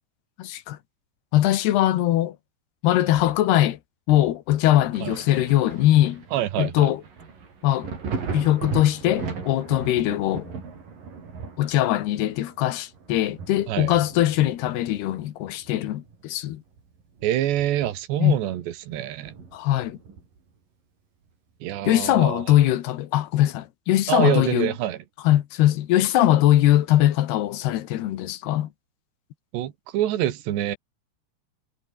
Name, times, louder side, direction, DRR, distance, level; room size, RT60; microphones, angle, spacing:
voice 1, 0.4-0.8 1.3-2.4 2.8-3.8 4.1-6.2 6.6-7.0 7.6-7.9 8.3-10.5 11.6-16.6 18.2-18.4 19.5-20.0 21.8-24.7 25.2-28.7, left 13 dB, 75° left, 3.3 m, -21 dB
Thunder, 4.9-16.3 16.7-18.2 18.5-18.6 19.2-20.5 21.9-22.0, right 5 dB, 55° right, 6.7 m, -37 dB
voice 2, 6.3-6.9 13.7-13.9 17.2-19.3 21.6-22.6 24.1-25.0 29.5-30.8, right 12 dB, 85° right, 3.9 m, -26 dB
omnidirectional pair, 4.8 m